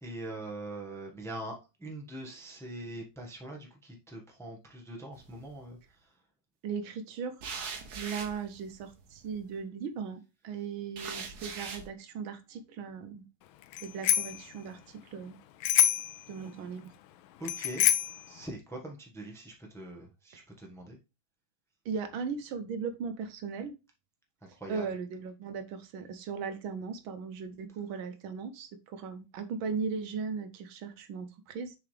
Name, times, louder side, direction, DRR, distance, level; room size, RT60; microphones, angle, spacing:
voice 1, 0.0-6.1 17.4-17.9 18.3-21.0 24.6-24.8, right 1 dB, ahead, 1 dB, 1.1 m, -42 dB
sound 1, 5.1-5.7 7.4-9.4 11.0-11.9, right 5 dB, 55° right, 1.4 m, -41 dB
voice 2, 6.6-7.4 7.9-13.3 13.8-15.4 16.3-16.9 20.3-20.4 21.8-23.7 24.5-31.7, right 5 dB, 75° right, 9 dB, 1.6 m, -38 dB
Bicycle bell, 13.7-14.4 15.6-16.2 17.5-18.2, left 11 dB, 80° left, 1.4 m, -26 dB
6.9 x 4.8 x 3.3 m, 0.27 s
omnidirectional pair, 2.3 m